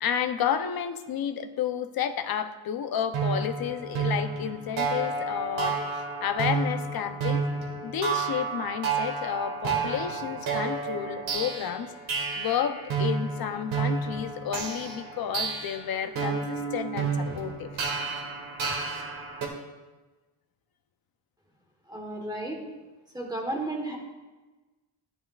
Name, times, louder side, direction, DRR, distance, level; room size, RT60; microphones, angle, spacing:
voice 1, 0.0-7.4 7.8-11.9 12.4-17.7, left 8 dB, 50° left, 9 dB, 0.6 m, -31 dB
sound 1, 3.1-19.5, right 4 dB, 80° right, 1.7 m, -31 dB
voice 2, 21.9-22.6 23.1-24.0, right 1 dB, 10° right, 0 dB, 1.2 m, -33 dB
12.0 x 11.0 x 2.4 m, 1.2 s
wide cardioid pair, 175°, 46 cm